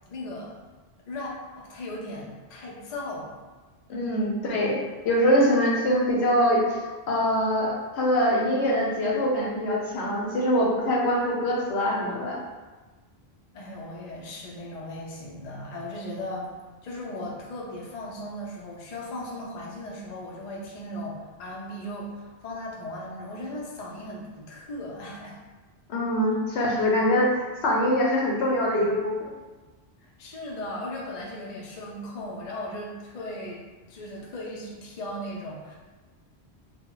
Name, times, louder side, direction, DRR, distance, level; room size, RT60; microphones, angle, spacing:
voice 1, 0.1-0.6 1.1-3.4 13.5-16.5 16.8-25.4 30.0-33.6 33.9-35.7, left 1 dB, 50° left, -3 dB, 0.5 m, -37 dB
voice 2, 3.9-6.8 7.1-12.4 25.9-29.3, equal, 80° left, -2 dB, 0.9 m, -24 dB
2.1 x 2.1 x 3.6 m, 1.3 s
omnidirectional pair, 1.1 m